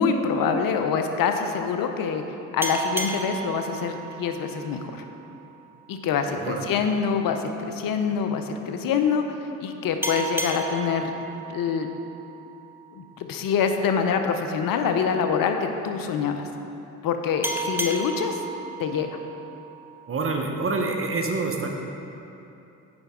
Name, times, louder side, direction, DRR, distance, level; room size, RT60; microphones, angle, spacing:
voice 1, 0.0-2.2 2.5-5.0 5.9-9.2 9.6-11.1 11.5-11.9 13.0-16.4 17.0-18.4 18.8-19.1, left 6 dB, 60° left, 6 dB, 0.7 m, -25 dB
gas station bell, 2.6-5.8 10.0-13.2 17.4-20.4, right 2 dB, 5° right, 0.7 m, -34 dB
voice 2, 6.4-6.7 20.1-21.7, right 3 dB, 35° right, 2 dB, 1.0 m, -27 dB
8.8 x 5.6 x 3.7 m, 2.8 s
hypercardioid pair, 60°, 39 cm